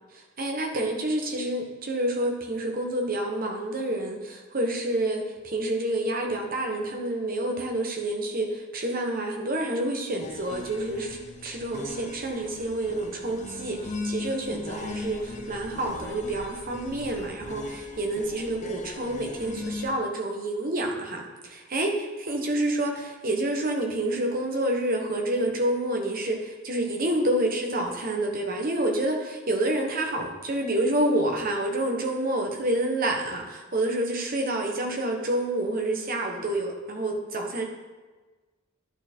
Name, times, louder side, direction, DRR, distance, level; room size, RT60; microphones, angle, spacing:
voice 1, 0.1-11.2 11.4-37.6, right 1 dB, 45° right, 2 dB, 1.1 m, -28 dB
sound 1, 10.2-19.9, left 2 dB, 35° left, 0.7 m, -39 dB
10.5 x 4.4 x 4.4 m, 1.3 s
head